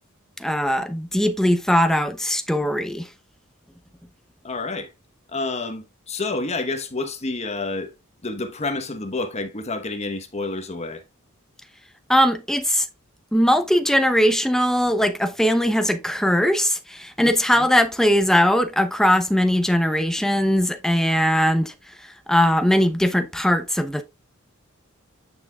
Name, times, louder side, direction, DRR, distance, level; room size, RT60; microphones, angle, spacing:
voice 1, 0.4-3.1 12.1-12.9 13.3-21.7 22.3-24.0, equal, ahead, 0.7 m, -20 dB
voice 2, 4.4-4.9 5.3-7.9 8.2-11.0 17.2-17.3, left 3 dB, 30° left, 1.1 m, -29 dB
8.9 x 6.0 x 2.4 m
head